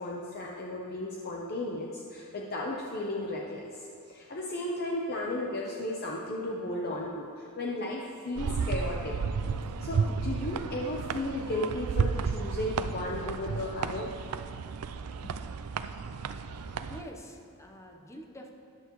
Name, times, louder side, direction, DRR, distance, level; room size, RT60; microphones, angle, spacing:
voice 1, 0.0-9.1 9.8-14.1, left 1 dB, 45° left, -2 dB, 0.8 m, -34 dB
sound 1, 8.4-17.0, right 5 dB, 80° right, 0.4 m, -33 dB
voice 2, 16.8-18.5, equal, 15° left, 1 dB, 0.9 m, -46 dB
13.5 x 10.5 x 3.1 m, 2.6 s
head